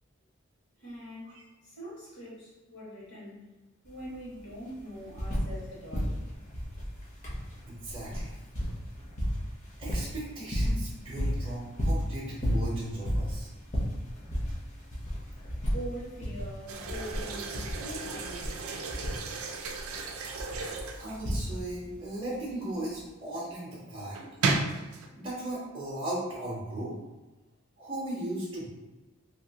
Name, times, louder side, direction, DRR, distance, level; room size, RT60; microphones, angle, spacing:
voice 1, 0.8-1.3 1.6-3.4 3.8-6.2 15.7-18.9, equal, 60° left, -7 dB, 1.4 m, -43 dB
sound 1, 3.9-4.0 4.2-5.6 5.9-21.9 22.9-23.0, equal, 35° left, 0.8 m, -33 dB
voice 2, 7.7-8.4 9.8-13.5 21.0-24.2 25.1-27.0 27.8-28.7, right 1 dB, 25° right, -6 dB, 0.7 m, -37 dB
sound 2, 16.7-21.6 24.1-25.1, right 3 dB, 80° right, 0.4 m, -34 dB
2.8 x 2.7 x 2.8 m, 1.1 s
head